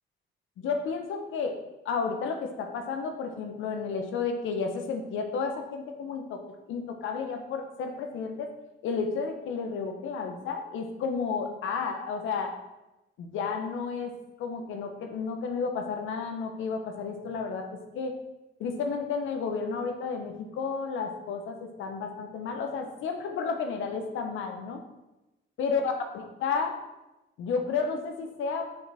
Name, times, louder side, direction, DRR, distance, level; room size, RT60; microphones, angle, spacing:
voice 1, 0.6-1.6 1.8-6.4 6.7-8.5 8.8-12.5 13.2-14.1 14.4-17.6 17.9-18.2 18.6-24.8 25.6-26.8 27.4-28.7, left 5 dB, 85° left, 5 dB, 1.1 m, -32 dB
6.9 x 5.7 x 4.3 m, 0.99 s
cardioid pair, 90°, 20 cm